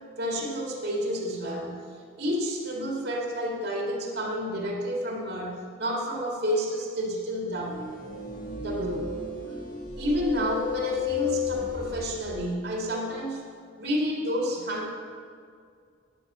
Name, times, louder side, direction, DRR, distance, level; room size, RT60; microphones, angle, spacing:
voice 1, 0.2-1.9 2.2-7.8 8.6-9.0 10.0-13.4 13.8-14.9, equal, 55° right, -1 dB, 2.2 m, -30 dB
sound 1, 7.6-12.3, left 6 dB, 45° left, 1.5 m, -33 dB
11.0 x 8.3 x 6.7 m, 2.2 s
head